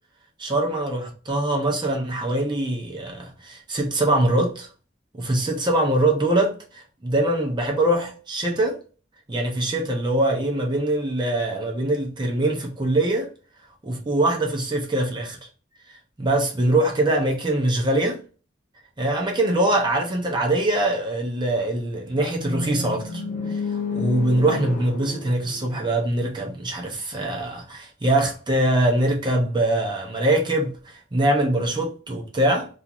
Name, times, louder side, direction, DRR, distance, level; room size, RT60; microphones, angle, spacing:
voice 1, 0.4-4.7 5.1-8.8 9.3-13.3 13.8-15.4 16.2-18.2 19.0-23.2 23.5-32.7, right 1 dB, 25° right, 0.6 m, -23 dB
sound 1, 22.1-26.2, left 4 dB, 40° left, 0.6 m, -31 dB
2.5 x 2.4 x 2.9 m
head